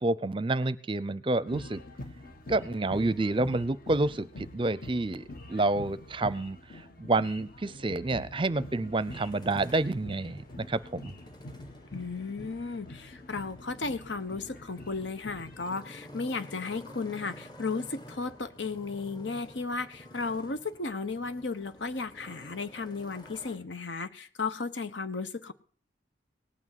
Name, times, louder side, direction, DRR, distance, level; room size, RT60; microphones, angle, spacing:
voice 1, 0.0-1.8 2.5-11.1, right 2 dB, 30° right, 17 dB, 0.6 m, -29 dB
sound 1, 1.5-15.8, left 1 dB, 50° left, 1.6 m, -45 dB
Motorcycle, 8.9-23.6, equal, 25° left, 1.7 m, -51 dB
voice 2, 11.9-25.5, left 4 dB, 75° left, 11 dB, 1.2 m, -35 dB
18.5 x 6.2 x 9.1 m, 0.43 s
head